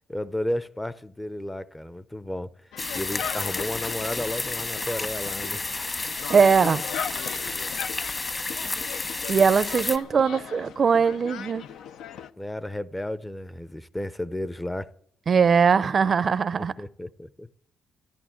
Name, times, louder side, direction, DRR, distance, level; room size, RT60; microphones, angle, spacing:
voice 1, 0.1-2.5 2.9-5.6 12.4-14.9 16.8-17.5, left 1 dB, 10° left, 0.6 m, -33 dB
sound 1, 2.7-12.3, left 8 dB, 80° left, 0.7 m, -38 dB
sound 2, 2.8-10.0, left 3 dB, 30° left, 1.3 m, -31 dB
voice 2, 6.3-6.8 9.3-11.7 15.3-16.7, right 6 dB, 45° right, 0.5 m, -20 dB
13.5 x 11.0 x 8.8 m
cardioid pair, 90°, 0 cm